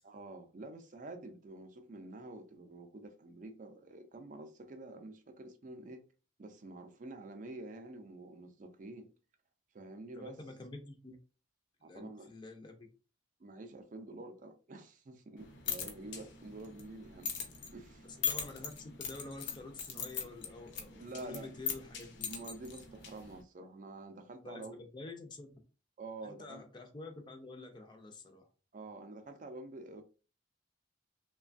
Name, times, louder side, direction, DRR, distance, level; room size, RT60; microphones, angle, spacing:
voice 1, 0.0-6.0 6.4-9.1 9.7-10.4 11.8-12.3 13.4-17.3 17.7-18.1 20.9-21.5 22.2-24.8 26.0-26.6 28.7-30.0, right 2 dB, 40° right, 0.4 m, -48 dB
voice 2, 10.1-11.2 11.8-12.9 18.1-22.3 24.4-24.6 24.9-25.5 26.2-28.5, left 2 dB, 25° left, 0.4 m, -48 dB
sound 1, 15.4-23.4, left 7 dB, 75° left, 0.6 m, -41 dB
3.1 x 2.2 x 2.5 m
head